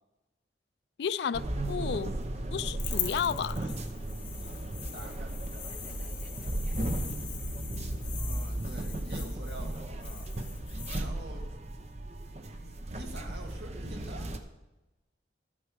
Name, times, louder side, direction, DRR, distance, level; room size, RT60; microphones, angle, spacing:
voice 1, 1.0-2.1 2.5-3.7, left 7 dB, 70° left, 0.3 m, -32 dB
sound 1, 1.3-14.4, right 1 dB, 40° right, 0.7 m, -35 dB
sound 2, 1.8-2.8 3.2-4.3 4.5-6.8, equal, 5° right, 1.8 m, -58 dB
sound 3, 2.8-11.0, left 10 dB, 50° left, 1.3 m, -42 dB
voice 2, 4.9-5.4 8.1-10.3 10.9-11.5 12.3-14.3, right 1 dB, 70° right, 1.8 m, -47 dB
12.0 x 8.9 x 4.8 m
head